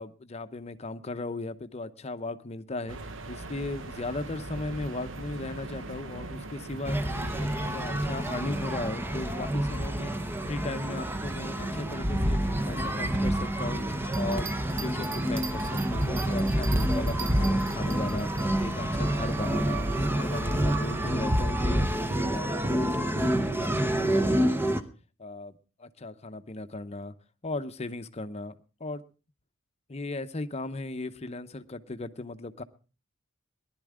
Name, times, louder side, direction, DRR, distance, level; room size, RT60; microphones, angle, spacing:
voice 1, 0.0-3.0 3.3-7.0 7.4-24.9 25.2-27.1 27.4-28.5 28.8-29.0 29.9-32.6, left 2 dB, 35° left, 10 dB, 0.7 m, -37 dB
sound 1, 2.9-21.4, right 2 dB, 75° right, 0.9 m, -42 dB
sound 2, 6.9-24.8, right 1 dB, 10° right, 0.8 m, -28 dB
sound 3, 14.0-18.5, right 6 dB, 40° right, 1.1 m, -41 dB
19.0 x 11.5 x 3.6 m, 0.34 s
head